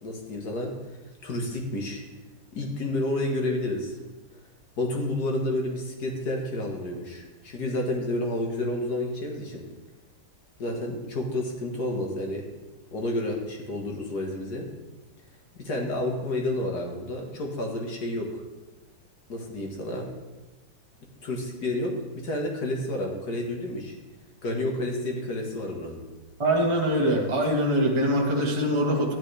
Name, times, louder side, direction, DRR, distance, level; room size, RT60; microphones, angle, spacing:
voice 1, 0.0-0.7 1.2-2.0 2.5-4.0 4.8-9.6 10.6-12.5 12.9-14.7 15.6-18.4 19.3-20.1 21.2-24.0 24.4-26.0, left 1 dB, 65° left, 0 dB, 2.1 m, -30 dB
voice 2, 26.4-29.1, equal, 20° right, -1 dB, 1.3 m, -23 dB
11.5 x 9.7 x 3.4 m, 1.1 s
omnidirectional pair, 1.9 m